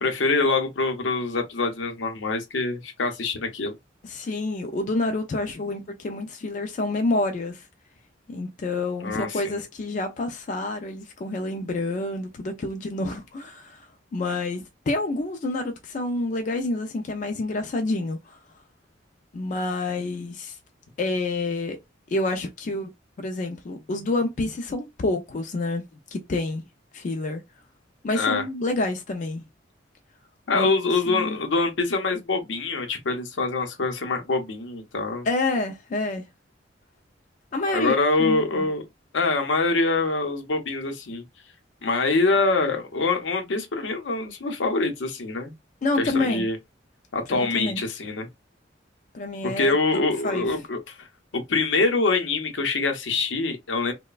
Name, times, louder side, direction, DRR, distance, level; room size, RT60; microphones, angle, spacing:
voice 1, 0.0-3.7 9.0-9.6 28.1-28.4 30.5-35.3 37.7-38.8 39.1-41.2 41.8-45.5 46.0-46.6 47.1-48.3 49.4-51.1 51.3-53.9, left 3 dB, 80° left, 0.7 m, -25 dB
voice 2, 4.0-7.7 8.3-18.4 19.3-20.6 21.0-21.8 22.1-22.9 23.2-25.8 26.1-26.6 26.9-27.4 28.0-29.4 30.5-30.7 31.1-31.4 35.2-36.3 37.5-38.7 45.8-46.4 47.3-47.8 49.1-49.7 50.2-50.5, left 2 dB, 40° left, 0.4 m, -28 dB
3.0 x 2.1 x 2.3 m
head